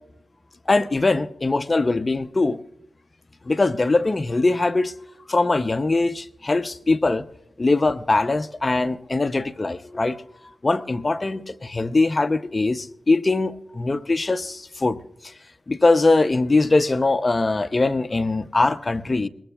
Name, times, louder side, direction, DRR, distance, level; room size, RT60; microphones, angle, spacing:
voice 1, 0.7-2.6 3.5-4.9 5.3-7.2 7.6-10.2 10.4-15.0 15.7-19.3, left 3 dB, 30° left, 0.6 m, -21 dB
22.5 x 20.5 x 2.3 m
wide cardioid pair, 100°, 0 cm